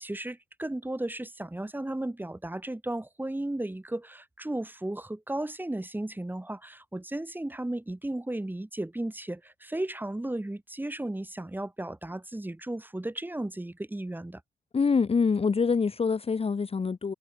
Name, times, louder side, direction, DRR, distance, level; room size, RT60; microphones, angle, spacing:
voice 1, 0.0-14.4, right 1 dB, 10° right, 4.4 m, -35 dB
voice 2, 14.7-17.1, left 5 dB, 30° left, 1.3 m, -25 dB
cardioid pair, 90°, 20 cm